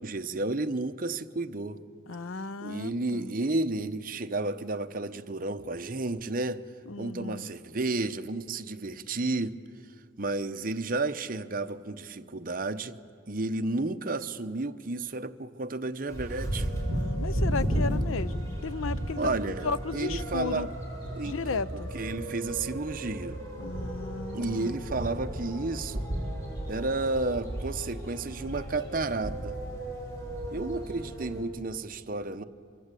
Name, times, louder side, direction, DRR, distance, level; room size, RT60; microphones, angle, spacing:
voice 1, 0.0-1.8 2.6-6.7 7.0-9.6 10.2-13.0 13.3-16.7 19.2-20.7 21.1-23.4 24.3-26.1 26.7-29.6 30.5-32.4, right 2 dB, 45° right, 0.8 m, -32 dB
voice 2, 2.1-3.3 6.9-7.5 16.9-20.7 21.2-21.9 23.6-24.8, left 4 dB, 80° left, 0.6 m, -35 dB
sound 1, 16.1-31.4, right 1 dB, 15° left, 5.0 m, -34 dB
26.0 x 24.0 x 8.4 m
head